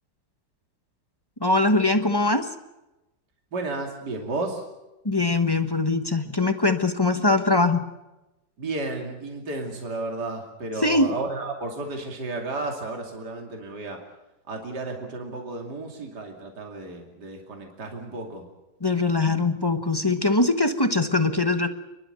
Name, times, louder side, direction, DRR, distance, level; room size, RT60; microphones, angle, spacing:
voice 1, 1.4-2.5 5.0-7.8 10.8-11.1 18.8-21.7, left 2 dB, 15° left, 7 dB, 0.8 m, -22 dB
voice 2, 3.5-4.7 8.6-14.0 14.5-18.5, right 3 dB, 60° right, 2 dB, 3.3 m, -33 dB
29.0 x 12.0 x 9.1 m, 0.99 s
omnidirectional pair, 2.0 m